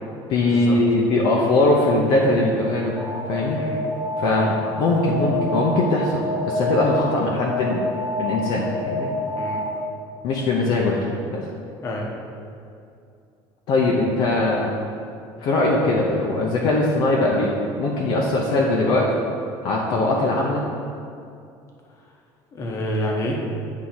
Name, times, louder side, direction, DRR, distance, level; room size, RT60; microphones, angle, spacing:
voice 1, 0.3-3.0 3.3-3.6 4.2-4.5 4.8-7.8 8.2-9.1 10.2-11.1 11.3-11.4 13.7-14.7 15.4-17.5 17.8-19.1 19.6-20.6, left 2 dB, 55° left, -3 dB, 0.8 m, -21 dB
Alarm, 3.0-10.0, left 1 dB, 10° right, 0.8 m, -28 dB
voice 2, 22.5-23.4, left 1 dB, 30° left, -1 dB, 1.0 m, -28 dB
9.5 x 3.6 x 4.3 m, 2.5 s
cardioid pair, 160°, 10 cm